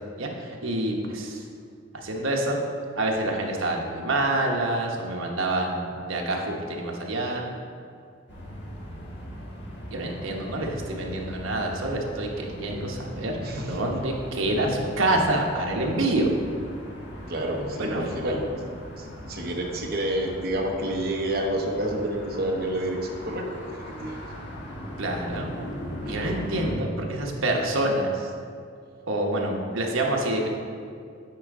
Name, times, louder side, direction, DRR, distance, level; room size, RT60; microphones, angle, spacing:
voice 1, 0.2-1.4 1.9-2.6 3.0-7.4 9.9-13.3 13.7-16.3 17.8-18.4 25.0-25.5 26.1-28.3 29.1-30.5, right 1 dB, 80° right, 0 dB, 1.0 m, -27 dB
sound 1, 8.3-26.7, equal, 55° left, 1.7 m, -40 dB
voice 2, 13.4-13.8 17.3-18.5 19.0-24.2 26.0-26.3, right 1 dB, 50° right, 0 dB, 0.9 m, -29 dB
8.8 x 4.8 x 3.7 m, 2.3 s
head